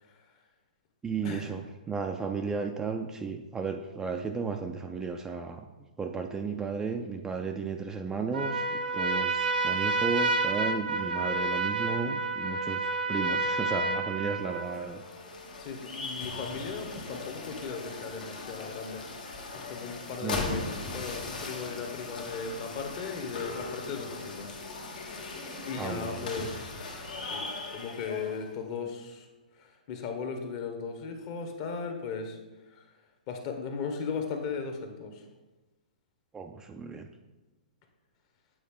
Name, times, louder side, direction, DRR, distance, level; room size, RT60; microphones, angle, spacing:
voice 1, 1.0-5.6 6.0-12.8 13.1-15.0 20.2-20.5 25.8-26.3 36.3-37.1, right 5 dB, 10° right, 4 dB, 0.3 m, -34 dB
Trumpet, 8.3-14.8, right 3 dB, 90° right, 0.7 m, -29 dB
sound 1, 14.4-28.5, left 3 dB, 70° left, 1.4 m, -39 dB
voice 2, 15.6-24.6 25.0-25.2 25.7-27.0 27.2-29.3 29.6-32.4 32.7-32.9 33.3-35.2, left 5 dB, 40° left, 5 dB, 1.1 m, -37 dB
8.6 x 4.0 x 3.6 m, 1.1 s
hypercardioid pair, 130°, 5 cm